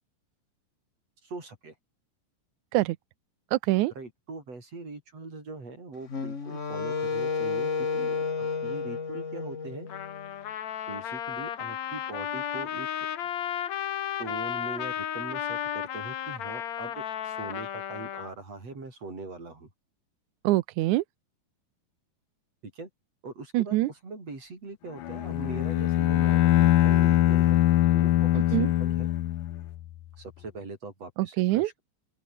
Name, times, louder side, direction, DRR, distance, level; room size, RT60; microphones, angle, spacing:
voice 1, 1.2-1.7 4.0-9.9 10.9-12.9 14.2-19.7 22.6-22.9 23.2-27.6 27.9-29.1 30.2-31.8, right 3 dB, 45° right, 8.1 m, -41 dB
voice 2, 3.5-3.9 20.4-21.0 23.5-23.9 28.5-28.7 31.2-31.7, right 17 dB, 75° right, 1.9 m, -24 dB
Wind instrument woodwind instrument, 6.1-10.3, left 5 dB, 30° left, 1.4 m, -31 dB
Trumpet, 9.9-18.3, left 10 dB, 60° left, 2.7 m, -34 dB
Bowed string instrument, 25.0-29.8, left 14 dB, 80° left, 2.8 m, -22 dB
open air
omnidirectional pair, 3.9 m